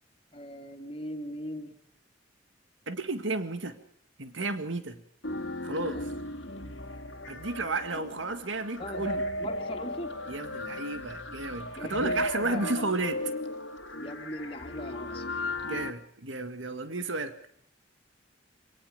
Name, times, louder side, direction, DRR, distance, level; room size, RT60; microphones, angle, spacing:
voice 1, 0.3-1.7 5.9-6.0 8.8-10.1 11.8-12.9 14.0-15.2, left 1 dB, 30° left, 4 dB, 2.9 m, -39 dB
voice 2, 2.9-3.8 4.2-5.0 5.6-6.1 7.3-9.2 10.3-13.2 15.6-17.4, right 2 dB, 85° right, 8 dB, 1.9 m, -33 dB
sound 1, 5.2-15.9, left 1 dB, 70° left, 2.1 m, -36 dB
26.0 x 18.5 x 5.4 m, 0.66 s
head